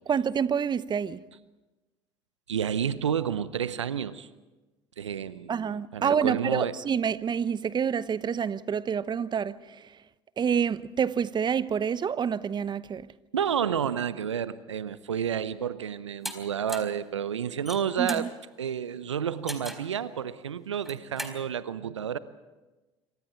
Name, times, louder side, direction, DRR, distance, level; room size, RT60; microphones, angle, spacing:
voice 1, 0.1-1.2 5.5-9.9 10.4-13.1 18.0-18.3, right 7 dB, 30° right, 0.9 m, -27 dB
voice 2, 2.5-4.3 5.0-5.5 5.9-6.8 13.3-18.3 18.6-22.2, right 8 dB, 85° right, 0.8 m, -30 dB
sound 1, 16.2-16.4 16.7-17.0 17.5-18.3 19.5-19.9 20.7-21.4, equal, ahead, 4.3 m, -37 dB
27.0 x 25.5 x 4.5 m
figure-of-eight pair, 65°, 15 cm